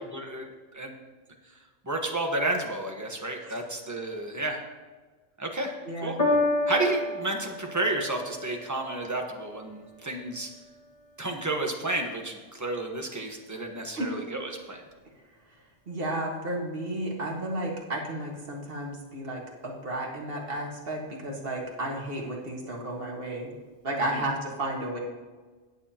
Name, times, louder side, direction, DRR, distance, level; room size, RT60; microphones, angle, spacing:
voice 1, 0.1-0.9 1.9-4.6 5.4-5.7 6.0-6.2 6.7-10.5 11.2-14.8 24.0-24.2, right 2 dB, 15° right, 2 dB, 1.1 m, -31 dB
voice 2, 5.9-6.2 14.0-14.1 15.9-23.5 23.8-25.0, right 1 dB, 50° right, -1 dB, 1.9 m, -33 dB
Piano, 6.2-12.8 13.6-13.7, left 2 dB, 30° left, 1.7 m, -32 dB
18.0 x 7.3 x 2.9 m, 1.4 s
omnidirectional pair, 1.3 m